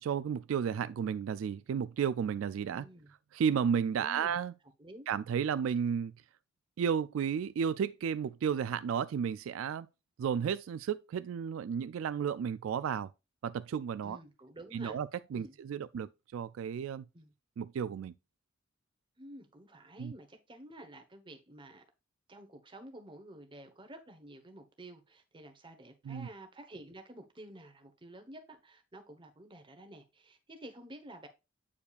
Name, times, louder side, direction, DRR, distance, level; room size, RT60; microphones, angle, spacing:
voice 1, 0.0-2.9 3.3-4.5 5.1-6.1 6.8-9.9 10.2-13.1 13.4-14.2 14.7-17.1 17.6-18.1 20.0-20.1 26.1-26.3, right 7 dB, 85° right, 0.3 m, -33 dB
voice 2, 2.6-3.1 4.0-4.4 4.8-5.1 14.0-15.0 15.3-15.5 17.1-17.3 19.2-21.8 22.3-31.3, right 1 dB, 25° right, 1.2 m, -51 dB
8.5 x 4.6 x 2.4 m
head